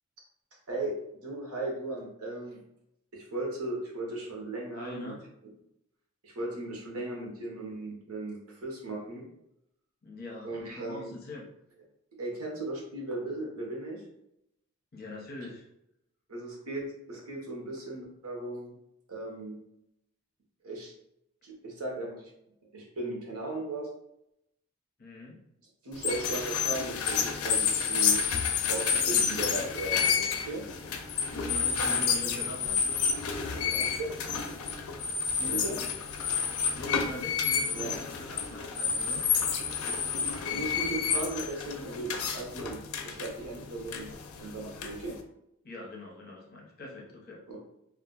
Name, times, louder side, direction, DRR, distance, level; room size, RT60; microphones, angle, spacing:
voice 1, 0.7-2.6 3.1-5.1 6.2-9.3 10.4-11.1 12.2-14.0 16.3-18.7 19.1-19.6 20.6-20.9 21.4-22.3 22.7-23.9 25.8-28.3 28.6-30.6 33.5-34.1 35.4-35.8 37.7-37.9 40.5-42.8 43.0-44.1 44.4-45.2 47.5-47.6, right 2 dB, 85° right, -1 dB, 0.9 m, -37 dB
voice 2, 4.7-5.2 10.0-11.4 14.9-15.7 25.0-25.4 31.3-33.0 35.4-35.9 36.7-39.2 45.6-47.4, left 2 dB, 40° left, -2 dB, 0.7 m, -43 dB
sound 1, 25.9-45.2, left 6 dB, 80° left, 0.4 m, -30 dB
2.4 x 2.2 x 3.8 m, 0.80 s
head